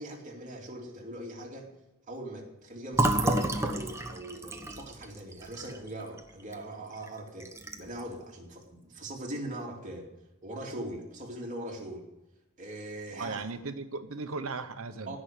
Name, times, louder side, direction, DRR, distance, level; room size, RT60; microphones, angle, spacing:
voice 1, 0.0-1.7 2.1-10.1 10.4-12.1 12.6-13.4 15.1-15.2, right 1 dB, 35° right, 0 dB, 2.8 m, -41 dB
Fill (with liquid), 2.9-6.6 6.9-7.1 7.4-8.0, right 1 dB, 15° right, 1.1 m, -30 dB
voice 2, 13.2-15.2, right 3 dB, 85° right, 9 dB, 1.0 m, -37 dB
16.5 x 6.3 x 9.9 m, 0.94 s
head